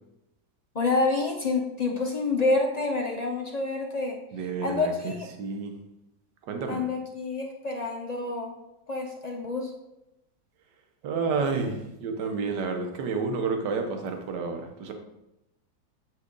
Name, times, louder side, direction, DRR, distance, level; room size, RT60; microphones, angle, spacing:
voice 1, 0.7-4.2 4.6-5.3 6.7-8.5 8.9-9.7, left 3 dB, 55° left, 0 dB, 0.4 m, -28 dB
voice 2, 4.3-5.7 6.5-6.8 11.0-14.9, right 4 dB, 70° right, 4 dB, 1.6 m, -30 dB
8.1 x 6.1 x 3.9 m, 0.90 s
omnidirectional pair, 2.0 m